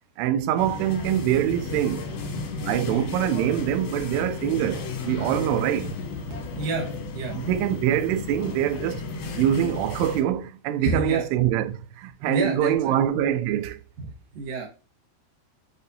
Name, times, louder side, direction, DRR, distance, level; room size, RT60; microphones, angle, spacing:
voice 1, 0.2-2.0 2.6-5.9 7.3-9.0 9.4-13.8, right 11 dB, 90° right, 2.7 m, -24 dB
sound 1, 0.6-10.2, left 3 dB, 75° left, 2.8 m, -33 dB
voice 2, 6.6-7.4 10.8-11.3 12.3-13.0 14.0-14.7, right 3 dB, 70° right, 1.5 m, -29 dB
7.1 x 2.6 x 2.7 m
omnidirectional pair, 4.7 m